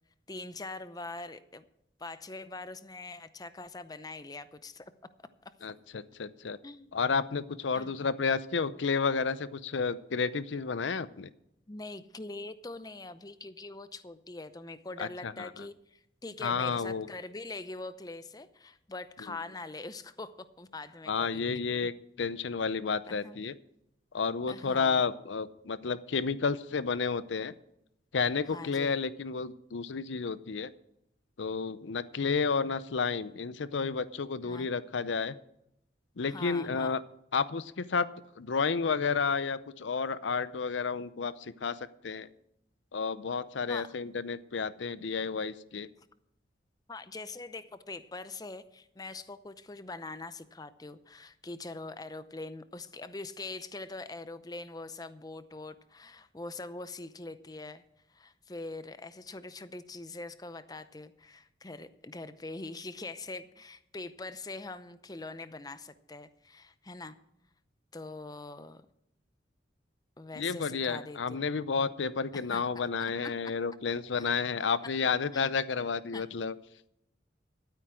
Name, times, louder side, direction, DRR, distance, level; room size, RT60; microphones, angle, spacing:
voice 1, 0.3-1.6 2.0-4.9 5.4-5.5 6.6-7.0 7.7-8.0 11.7-21.4 21.8-21.9 23.1-23.4 24.5-25.0 28.5-29.0 34.4-34.7 36.2-37.0 43.7-43.9 46.9-57.8 58.1-67.1 67.9-68.8 70.2-71.4 72.3-72.6 73.2-73.5 74.2-74.3 74.8-74.9 75.3-75.5 76.1-76.2, left 3 dB, 20° left, 13 dB, 0.6 m, -43 dB
voice 2, 5.6-6.6 6.9-11.3 15.0-15.5 16.4-17.1 21.1-21.9 22.2-23.5 24.1-27.5 28.1-30.7 31.4-35.3 36.2-37.0 37.3-38.1 38.4-42.3 42.9-45.9 70.4-76.5, left 5 dB, 90° left, 16 dB, 0.6 m, -31 dB
12.5 x 9.2 x 6.3 m, 0.78 s
head